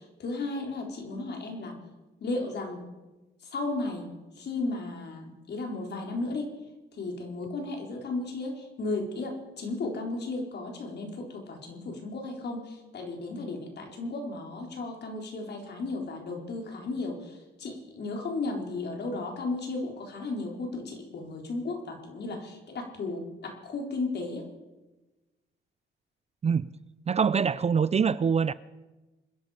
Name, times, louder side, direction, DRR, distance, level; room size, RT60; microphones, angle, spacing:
voice 1, 0.0-1.7 2.2-2.8 3.4-4.1 4.4-6.5 7.0-24.4, left 3 dB, 55° left, 2 dB, 4.0 m, -34 dB
voice 2, 27.1-28.5, right 6 dB, 35° right, 17 dB, 0.5 m, -24 dB
26.5 x 11.0 x 5.0 m, 1.1 s
cardioid pair, 90°, 20 cm